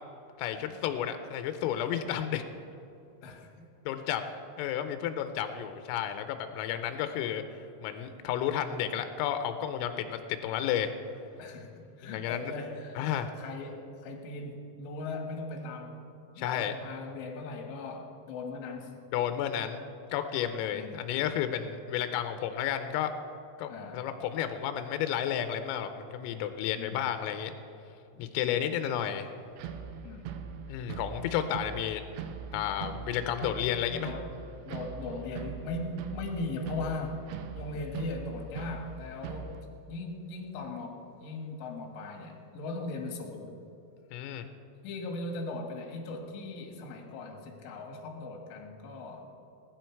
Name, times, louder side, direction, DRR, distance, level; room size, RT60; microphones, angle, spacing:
voice 1, 0.4-2.4 3.9-4.2 4.6-7.4 7.8-10.9 12.0-12.5 13.0-13.3 16.4-16.7 19.1-19.8 20.1-23.1 23.6-27.5 28.2-29.3 30.7-32.0 32.5-34.1 44.1-44.5, left 10 dB, 90° left, 8 dB, 3.4 m, -32 dB
voice 2, 3.2-3.5 11.4-11.7 12.0-13.1 13.4-16.0 16.4-18.9 20.7-21.1 23.7-24.0 26.8-27.1 28.1-28.6 30.0-30.3 33.9-34.3 34.6-37.3 37.6-39.6 39.9-43.6 44.8-49.3, left 2 dB, 75° left, 3 dB, 3.9 m, -39 dB
sound 1, 29.6-39.6, right 6 dB, 80° right, 2.5 m, -41 dB
20.0 x 10.5 x 4.6 m, 2.6 s
omnidirectional pair, 5.8 m